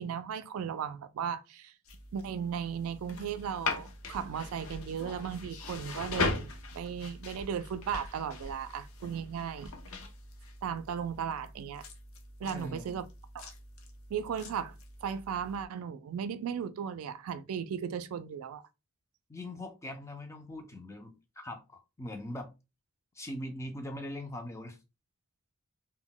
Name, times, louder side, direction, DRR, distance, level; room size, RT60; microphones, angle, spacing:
voice 1, 0.0-1.7 2.1-9.7 10.6-11.8 12.4-13.1 13.3-13.5 14.1-18.6, right 7 dB, 75° right, 0.3 m, -36 dB
sound 1, 1.9-15.7, left 3 dB, 70° left, 0.6 m, -40 dB
voice 2, 12.4-13.0 19.3-22.5 23.2-24.8, left 1 dB, 15° left, 0.3 m, -41 dB
2.1 x 2.1 x 3.7 m
head